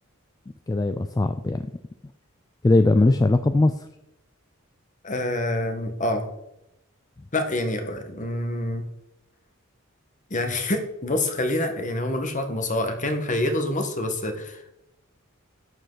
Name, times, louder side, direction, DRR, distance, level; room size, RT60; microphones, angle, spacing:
voice 1, 0.7-1.7 2.6-3.9, left 2 dB, 20° left, 10 dB, 0.3 m, -20 dB
voice 2, 5.0-6.3 7.3-8.8 10.3-14.6, left 1 dB, 35° left, 7 dB, 1.3 m, -26 dB
11.0 x 7.8 x 3.9 m, 0.87 s
head